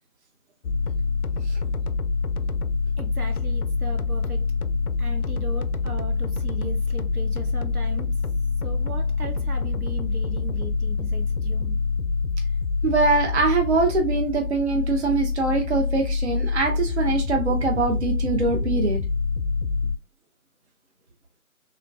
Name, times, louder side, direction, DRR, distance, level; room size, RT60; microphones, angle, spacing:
sound 1, 0.6-20.0, left 4 dB, 80° left, 0.5 m, -26 dB
voice 1, 3.0-4.5 5.0-8.2 8.6-11.8, right 2 dB, 80° right, 1.1 m, -38 dB
voice 2, 12.8-19.0, right 3 dB, 50° right, 0.6 m, -23 dB
3.3 x 2.2 x 3.1 m
figure-of-eight pair, 165°, 44 cm